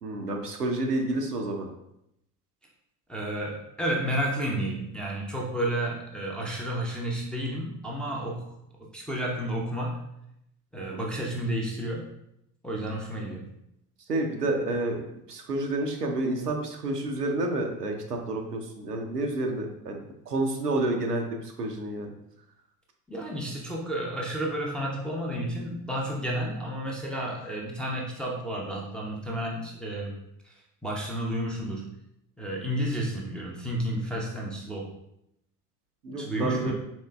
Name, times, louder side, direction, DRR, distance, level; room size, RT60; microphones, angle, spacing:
voice 1, 0.0-1.7 10.9-11.0 14.1-15.0 15.3-20.0 20.3-22.1 36.0-36.7, right 2 dB, 90° right, 2 dB, 0.6 m, -29 dB
voice 2, 3.1-8.5 8.9-10.0 10.7-12.1 12.6-13.4 23.1-30.2 30.4-30.5 30.8-31.9 32.4-34.9 36.1-36.7, right 1 dB, ahead, -3 dB, 0.4 m, -31 dB
4.4 x 3.1 x 2.2 m, 0.80 s
figure-of-eight pair, 70°, 46 cm